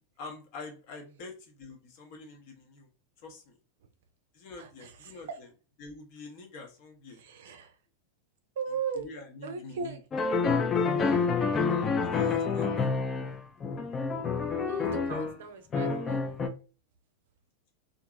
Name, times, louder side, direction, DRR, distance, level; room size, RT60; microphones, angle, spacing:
voice 1, 0.2-2.9 3.2-3.5 4.3-5.3 5.8-7.2 8.9-10.0 12.1-12.7, left 3 dB, 45° left, 0.8 m, -45 dB
voice 2, 4.6-5.4 7.1-7.8 8.6-9.1 9.4-10.6 14.6-16.2, right 6 dB, 55° right, 0.5 m, -38 dB
sound 1, 10.1-15.4 15.7-16.5, left 5 dB, 25° left, 0.4 m, -28 dB
2.8 x 2.5 x 2.3 m
figure-of-eight pair, 90°, 0 cm